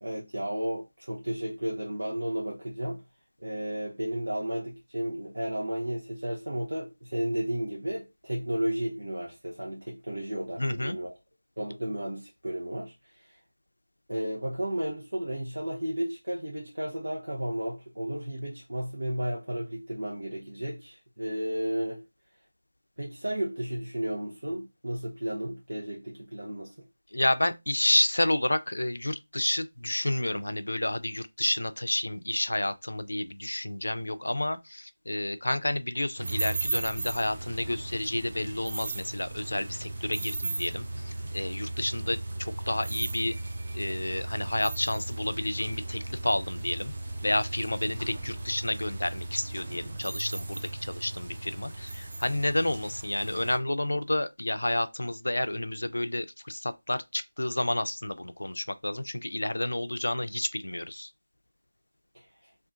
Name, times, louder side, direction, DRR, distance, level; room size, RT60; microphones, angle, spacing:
voice 1, 0.0-3.0 3.4-11.2 11.6-13.4 14.1-22.0 23.0-26.9 62.1-62.5, right 1 dB, 85° right, 0.7 m, -33 dB
voice 2, 10.6-11.0 27.1-43.3 43.7-46.9 47.2-61.1, left 1 dB, 90° left, 0.4 m, -30 dB
sound 1, 36.2-53.6, right 2 dB, 20° right, 0.4 m, -36 dB
3.5 x 2.4 x 2.4 m
figure-of-eight pair, 180°, 0 cm